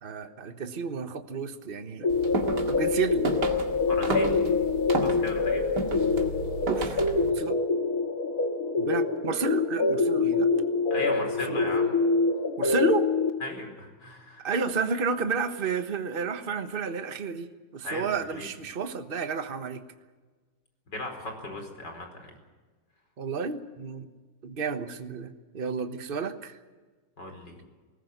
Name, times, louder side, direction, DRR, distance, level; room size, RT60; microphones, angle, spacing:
voice 1, 0.0-2.1 2.7-3.3 6.7-7.0 7.3-7.6 8.8-10.5 11.5-11.6 12.6-13.1 14.4-19.8 23.2-24.1 24.4-26.6, right 5 dB, 35° right, 8 dB, 1.3 m, -31 dB
sound 1, 2.0-13.3, left 4 dB, 55° left, 2.2 m, -25 dB
sound 2, 2.1-7.3, right 3 dB, 70° right, 2.6 m, -33 dB
voice 2, 3.9-4.4 4.9-5.6 10.9-11.9 13.4-14.4 17.8-18.5 20.9-22.3 27.2-27.6, left 2 dB, 75° left, 4 dB, 5.4 m, -37 dB
20.5 x 19.5 x 8.1 m, 1.4 s
omnidirectional pair, 1.9 m